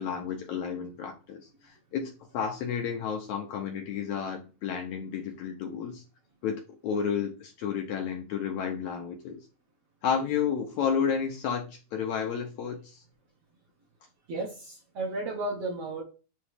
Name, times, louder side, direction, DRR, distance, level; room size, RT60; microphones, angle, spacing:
voice 1, 0.0-6.0 6.4-9.4 10.0-13.0, left 7 dB, 75° left, 3 dB, 1.8 m, -31 dB
voice 2, 14.3-16.0, right 2 dB, 60° right, 0 dB, 1.8 m, -33 dB
7.9 x 3.0 x 4.9 m, 0.33 s
omnidirectional pair, 4.0 m